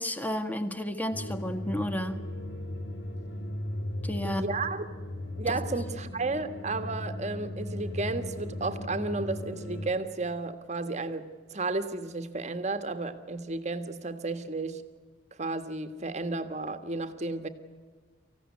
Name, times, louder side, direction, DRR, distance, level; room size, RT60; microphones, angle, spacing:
voice 1, 0.0-2.2 4.0-4.4 5.5-5.6, equal, 10° left, 9 dB, 1.5 m, -32 dB
sound 1, 1.1-9.9, left 1 dB, 65° left, 2.3 m, -37 dB
voice 2, 4.2-4.9 5.4-14.8 15.4-17.5, right 3 dB, 40° right, 9 dB, 1.6 m, -33 dB
25.0 x 16.0 x 9.7 m, 1.5 s
head